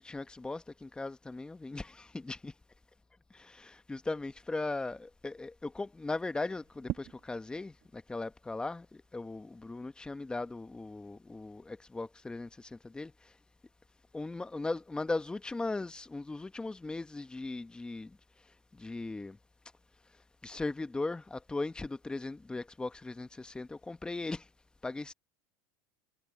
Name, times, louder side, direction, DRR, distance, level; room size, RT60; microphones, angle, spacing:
voice 1, 0.0-2.5 3.3-13.3 14.1-18.2 18.7-19.4 20.4-24.5 24.8-25.1, left 3 dB, 10° left, 1.3 m, -38 dB
sound 1, 6.3-23.4, right 16 dB, 50° right, 1.8 m, -52 dB
supercardioid pair, 110°, 8 cm